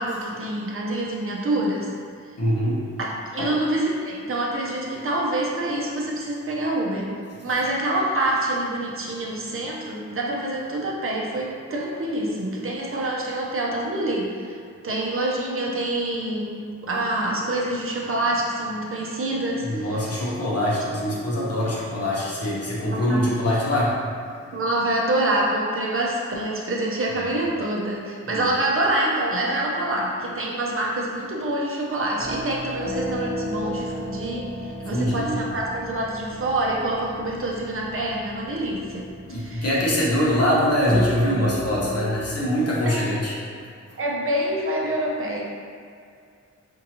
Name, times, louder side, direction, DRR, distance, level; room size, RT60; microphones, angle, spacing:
voice 1, 0.0-1.9 3.0-7.1 7.4-14.6 14.8-20.0 22.9-23.2 24.5-39.1 39.4-39.7 42.8-43.2 44.0-45.4, right 1 dB, 45° right, -2 dB, 0.5 m, -26 dB
voice 2, 2.4-2.8 3.4-3.5 19.6-23.9 27.2-27.4 28.3-28.5 34.9-35.4 39.3-43.3, equal, 55° left, -6 dB, 0.9 m, -23 dB
sound 1, 32.2-42.2, equal, 25° left, 1.0 m, -34 dB
4.4 x 2.7 x 2.8 m, 2.2 s
wide cardioid pair, 155°, 29 cm